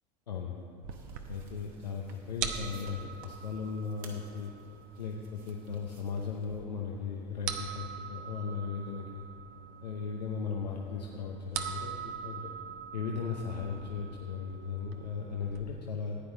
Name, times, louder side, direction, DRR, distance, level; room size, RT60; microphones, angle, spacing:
voice 1, 0.3-0.6 1.3-4.5 5.0-9.3 9.8-12.5 12.9-16.2, left 5 dB, 90° left, -1 dB, 0.9 m, -37 dB
sound 1, 0.8-15.6, right 8 dB, 60° right, 1.0 m, -43 dB
sound 2, 0.9-6.6, right 5 dB, 45° right, 1.6 m, -58 dB
15.0 x 9.6 x 4.0 m, 2.6 s
hypercardioid pair, 80°, 21 cm